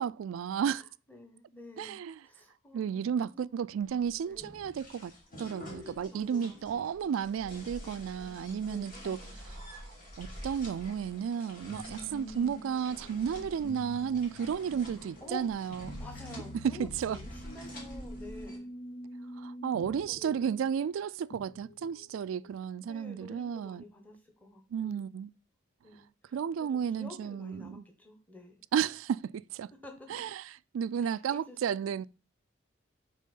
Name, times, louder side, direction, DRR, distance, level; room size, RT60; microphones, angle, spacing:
voice 1, 0.0-0.8 1.8-2.2 2.7-5.1 5.4-9.8 10.2-16.0 16.6-17.2 19.4-23.8 24.7-25.3 26.3-27.8 28.7-29.7 30.1-32.1, right 7 dB, 85° right, 0.3 m, -33 dB
voice 2, 0.8-2.0 2.2-4.6 5.4-6.9 8.6-8.9 15.2-15.5 16.0-18.7 19.8-20.6 22.8-24.1 24.4-25.1 25.8-26.1 26.6-26.7 27.0-28.6 29.8-30.2 31.0-31.9, left 1 dB, 10° left, 1.1 m, -49 dB
sound 1, 3.8-18.6, equal, 40° left, 2.5 m, -48 dB
sound 2, 11.7-22.5, left 1 dB, 70° left, 1.3 m, -47 dB
7.6 x 3.5 x 5.4 m
head